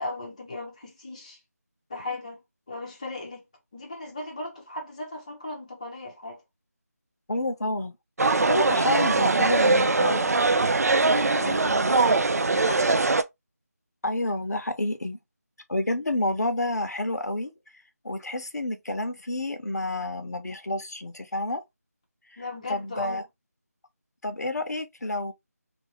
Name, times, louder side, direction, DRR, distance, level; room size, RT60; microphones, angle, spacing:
voice 1, 0.0-1.4 1.9-2.4 2.7-3.4 3.7-6.4 11.0-11.7 12.3-13.0 22.4-23.2, left 2 dB, 25° left, 0.6 m, -37 dB
voice 2, 7.3-8.0 8.5-10.4 11.4-12.0 12.8-12.9 14.0-15.2 15.7-21.6 22.3-23.3 24.2-25.3, left 2 dB, 75° left, 0.7 m, -29 dB
sound 1, 8.2-13.2, right 3 dB, 65° right, 0.4 m, -22 dB
2.6 x 2.5 x 2.9 m
figure-of-eight pair, 165°, 9 cm